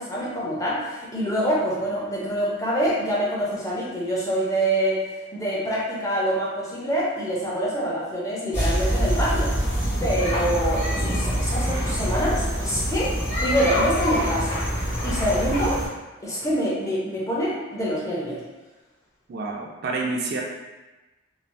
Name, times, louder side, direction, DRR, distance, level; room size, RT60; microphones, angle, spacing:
voice 1, 0.0-9.5 10.0-13.2 13.4-14.6 15.0-15.8 16.2-18.4, equal, 15° left, -6 dB, 0.5 m, -25 dB
sound 1, 8.5-15.9, equal, 45° left, 1.5 m, -25 dB
voice 2, 19.3-20.4, right 3 dB, 50° right, -1 dB, 0.3 m, -28 dB
3.1 x 2.0 x 2.5 m, 1.1 s
head